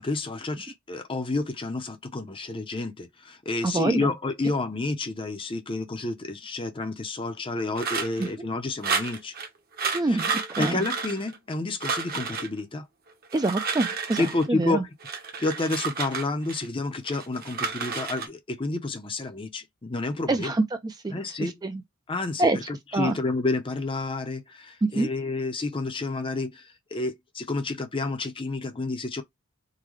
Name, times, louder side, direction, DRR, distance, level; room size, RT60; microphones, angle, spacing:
voice 1, 0.0-9.3 10.1-10.2 10.6-12.9 14.2-14.9 15.4-20.5 21.1-21.5 22.1-29.2, left 3 dB, 25° left, 0.6 m, -30 dB
voice 2, 3.6-4.1 8.2-8.3 9.9-10.9 13.3-14.8 20.3-21.8 22.4-22.6 22.9-23.1 24.8-25.1, right 2 dB, 20° right, 0.3 m, -26 dB
sound 1, 7.8-8.3 8.8-9.5 9.8-11.5 11.8-12.5 13.2-14.5 15.0-16.7 17.1-18.3, right 5 dB, 45° right, 0.9 m, -31 dB
3.8 x 2.2 x 3.1 m
head